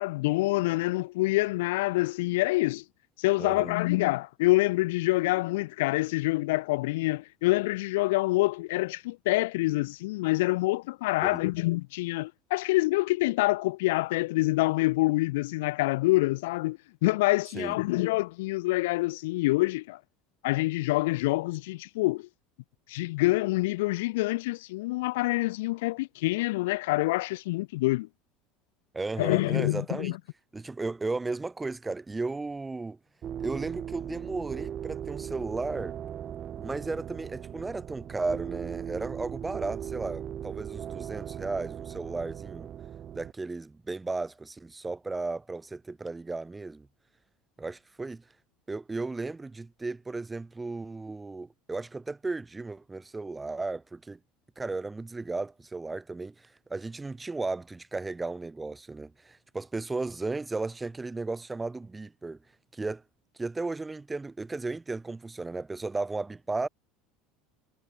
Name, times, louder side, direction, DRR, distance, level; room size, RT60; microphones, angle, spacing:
voice 1, 0.0-2.8 3.2-20.0 20.4-22.3 22.9-28.1 29.2-30.2, left 20 dB, 90° left, 3.1 m, -26 dB
voice 2, 3.4-3.8 11.2-11.4 17.5-17.8 28.9-30.2 30.5-33.0 33.4-36.0 36.6-42.7 43.1-46.9 47.6-48.2 48.7-54.2 54.6-62.4 62.7-63.0 63.4-66.7, right 3 dB, 10° right, 7.1 m, -35 dB
sound 1, 33.2-43.3, right 9 dB, 30° right, 5.1 m, -38 dB
cardioid pair, 150°, 0 cm